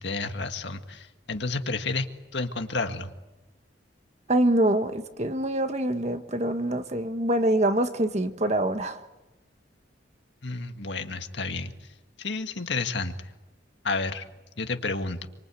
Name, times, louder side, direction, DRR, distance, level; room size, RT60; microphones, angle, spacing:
voice 1, 0.0-2.1 2.3-3.1 10.4-11.7 12.2-13.2 13.8-14.3 14.6-15.3, left 3 dB, 70° left, 1.9 m, -30 dB
voice 2, 4.3-9.0, right 1 dB, 35° right, 1.5 m, -25 dB
27.5 x 25.0 x 8.5 m
head